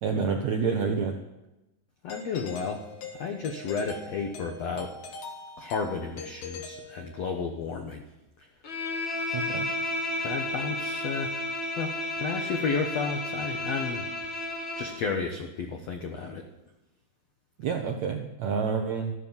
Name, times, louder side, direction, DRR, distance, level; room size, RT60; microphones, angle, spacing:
voice 1, 0.0-1.2 9.3-9.7 17.6-19.1, right 5 dB, 75° right, 3 dB, 1.6 m, -28 dB
voice 2, 2.0-2.8 3.1-4.9 5.6-8.0 10.2-11.3 11.8-14.1 14.8-16.5, left 5 dB, 85° left, 4 dB, 1.4 m, -32 dB
Doorbell, 2.1-7.5, left 4 dB, 65° left, 3.3 m, -43 dB
Bowed string instrument, 8.6-15.0, left 2 dB, 40° left, 1.8 m, -32 dB
14.0 x 12.5 x 7.3 m, 0.96 s
omnidirectional pair, 4.7 m